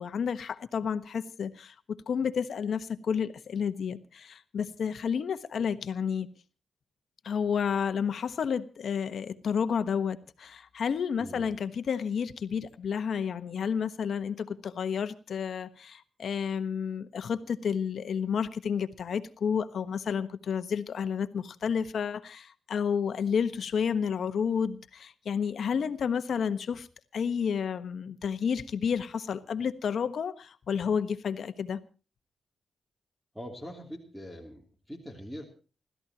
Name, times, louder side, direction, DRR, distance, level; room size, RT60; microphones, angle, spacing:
voice 1, 0.0-6.3 7.2-26.9 27.1-31.8, left 7 dB, 65° left, 1.2 m, -31 dB
voice 2, 11.2-11.5 33.3-35.4, equal, 5° right, 3.1 m, -42 dB
29.5 x 13.5 x 2.9 m
cardioid pair, 85°, 0 cm